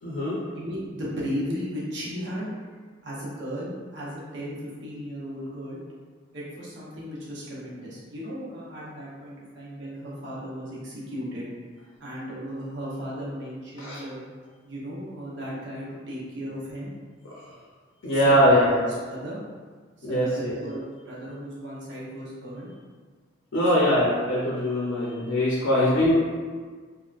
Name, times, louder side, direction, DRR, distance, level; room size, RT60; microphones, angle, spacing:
voice 1, 0.0-0.4 13.8-14.0 18.0-18.7 20.0-20.6 23.5-26.1, equal, 80° left, -6 dB, 0.6 m, -22 dB
voice 2, 0.5-2.5 3.0-5.8 6.3-11.5 12.0-14.2 14.6-16.9 18.1-18.8 19.1-19.4 20.0-22.7 23.7-24.0, equal, 60° right, -7 dB, 0.8 m, -35 dB
3.5 x 2.1 x 2.4 m, 1.5 s
head